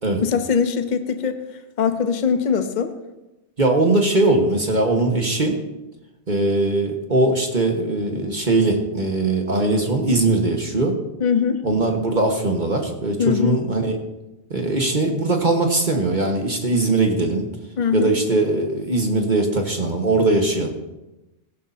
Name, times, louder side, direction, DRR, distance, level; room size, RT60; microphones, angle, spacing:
voice 1, 0.2-1.4 1.8-2.9 11.2-11.6 13.2-13.7 17.8-18.1, left 6 dB, 45° left, 8 dB, 1.0 m, -21 dB
voice 2, 3.6-5.6 6.3-10.9 11.6-14.0 14.5-17.5 17.9-20.7, right 2 dB, 45° right, 2 dB, 1.6 m, -20 dB
17.0 x 15.5 x 2.8 m, 0.99 s
omnidirectional pair, 1.2 m